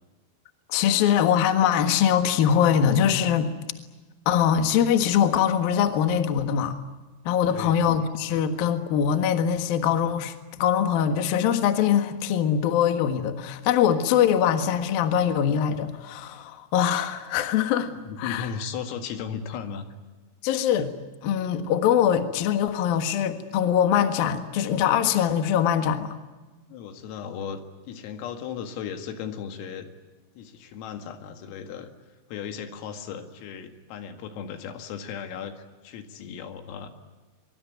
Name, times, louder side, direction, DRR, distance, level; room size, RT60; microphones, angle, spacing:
voice 1, 0.7-3.5 4.3-6.8 7.3-17.9 18.2-18.5 20.4-20.9 21.2-26.2, left 9 dB, 60° left, 8 dB, 2.7 m, -22 dB
voice 2, 7.5-7.8 17.9-19.9 26.7-27.6 27.9-29.9 30.4-31.9 32.3-36.9, left 7 dB, 80° left, 7 dB, 4.6 m, -36 dB
23.5 x 23.0 x 9.4 m, 1.3 s
omnidirectional pair, 6.0 m